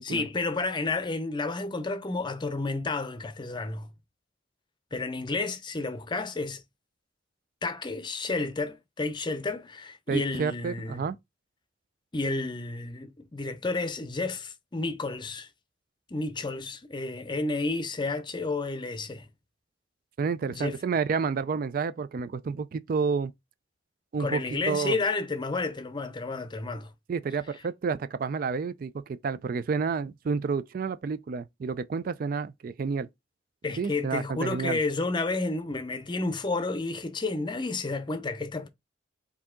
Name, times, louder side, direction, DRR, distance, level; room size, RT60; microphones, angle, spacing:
voice 1, 0.0-3.9 4.9-6.6 7.6-11.1 12.1-15.5 16.1-19.3 20.5-20.8 24.2-26.9 33.6-38.7, left 3 dB, 25° left, 0.6 m, -31 dB
voice 2, 10.1-11.2 20.2-23.3 24.1-24.4 24.7-25.0 27.1-33.1 33.8-34.8, right 5 dB, 50° right, 0.3 m, -30 dB
4.7 x 2.8 x 3.6 m
head